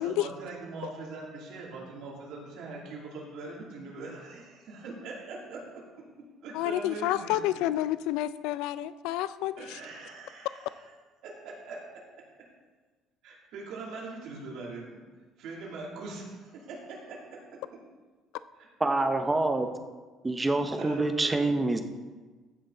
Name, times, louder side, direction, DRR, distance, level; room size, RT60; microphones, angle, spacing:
voice 1, 0.0-5.8 6.4-7.6 9.6-10.9 11.2-12.3 13.2-15.0 15.4-17.4 20.8-21.6, right 3 dB, 65° right, -3 dB, 2.7 m, -42 dB
voice 2, 6.5-9.8, left 14 dB, 90° left, 15 dB, 0.3 m, -29 dB
voice 3, 18.8-19.7 20.2-21.8, right 2 dB, 10° right, 7 dB, 0.7 m, -26 dB
15.0 x 6.2 x 3.9 m, 1.3 s
cardioid pair, 155°, 0 cm